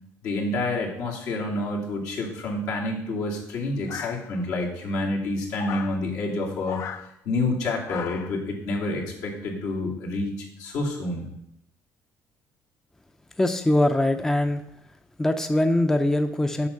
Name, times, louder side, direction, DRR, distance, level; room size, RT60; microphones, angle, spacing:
voice 1, 0.2-6.8 7.2-10.3 10.6-11.3, left 2 dB, 80° left, -3 dB, 2.4 m, -28 dB
sound 1, 3.9-4.6 5.6-6.0 6.6-7.1 7.9-8.4, left 7 dB, 55° left, 0.6 m, -36 dB
voice 2, 13.4-14.6 15.2-16.7, left 1 dB, 10° left, 8 dB, 0.5 m, -22 dB
7.0 x 5.3 x 6.4 m, 0.79 s
cardioid pair, 120°, 6 cm